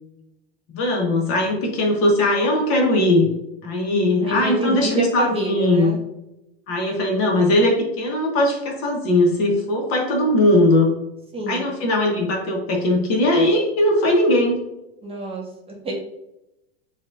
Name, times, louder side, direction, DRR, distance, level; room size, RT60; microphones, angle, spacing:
voice 1, 0.7-3.3 3.6-5.9 6.7-10.9 11.5-14.6, left 1 dB, 45° left, -1 dB, 1.5 m, -19 dB
voice 2, 4.2-6.0 11.3-11.8 15.0-15.9, right 1 dB, 15° right, -2 dB, 1.4 m, -27 dB
7.4 x 2.7 x 2.6 m, 0.91 s
hypercardioid pair, 105°, 32 cm